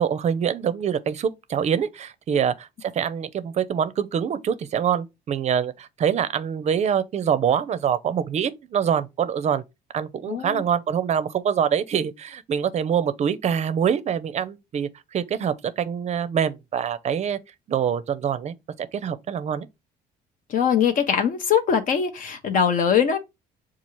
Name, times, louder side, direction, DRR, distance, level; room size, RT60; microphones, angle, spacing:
voice 1, 0.0-9.6 9.9-17.4 17.7-19.7, right 8 dB, 40° right, 0.5 m, -25 dB
voice 2, 10.3-10.6 20.5-23.2, left 7 dB, 55° left, 0.6 m, -22 dB
6.9 x 2.4 x 3.0 m
cardioid pair, 110°, 17 cm